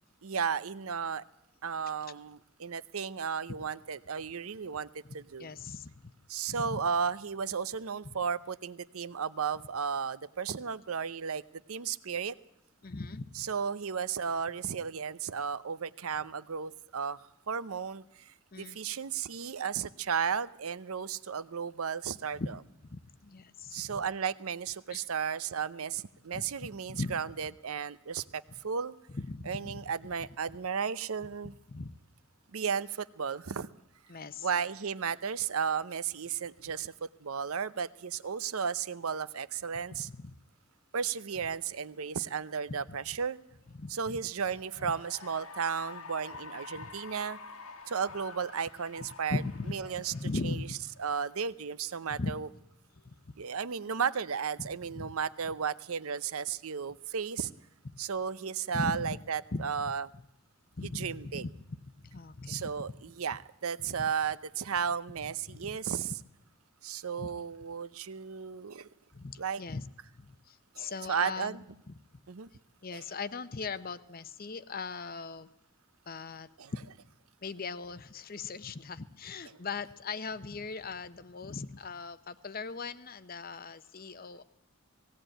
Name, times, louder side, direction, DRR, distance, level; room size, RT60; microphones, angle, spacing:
voice 1, 0.2-1.2 1.6-4.9 5.1-5.5 6.3-11.4 11.7-12.3 13.3-22.4 23.7-28.9 29.5-31.5 32.5-33.7 34.4-40.1 40.9-43.4 43.9-47.4 47.9-49.4 49.7-50.1 50.4-50.7 51.0-52.5 53.4-57.5 58.0-60.1 60.8-61.4 62.5-66.1 66.8-68.9 69.4-69.6 70.8-71.6 72.3-72.5 72.9-73.0 76.6-76.7, right 6 dB, 75° right, 16 dB, 0.7 m, -34 dB
voice 2, 5.4-5.9 6.5-6.8 12.8-13.5 18.5-18.8 22.4-22.5 22.9-24.0 24.9-25.1 26.3-26.4 26.9-27.1 29.1-29.8 31.7-32.0 34.1-34.5 39.9-40.4 42.9-43.0 43.7-44.2 44.8-44.9 46.7-46.9 49.3-49.8 50.1-50.8 52.1-52.4 54.6-54.7 54.9-55.1 57.8-58.0 58.7-59.2 59.5-59.9 60.8-62.7 63.8-64.1 65.2-65.3 65.6-65.8 67.2-67.3 69.1-69.9 70.1-71.9 72.8-75.5 76.1-76.8 77.4-84.4, left 3 dB, 40° left, 14 dB, 0.7 m, -39 dB
Cheering / Applause, 44.4-51.0, left 4 dB, 80° left, 1.9 m, -48 dB
18.0 x 17.0 x 9.0 m, 0.81 s
head